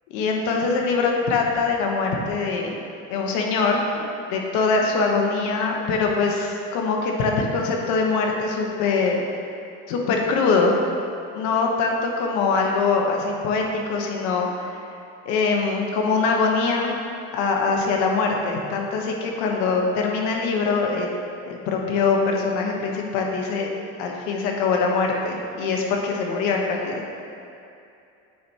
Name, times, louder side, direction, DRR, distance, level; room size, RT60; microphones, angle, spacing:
voice 1, 0.1-2.8 3.1-4.0 4.3-9.4 9.9-10.8 11.3-14.7 15.2-16.9 17.3-23.7 24.0-27.0, left 4 dB, 70° left, 1 dB, 1.0 m, -23 dB
8.3 x 4.6 x 2.8 m, 2.6 s
cardioid pair, 120°, 31 cm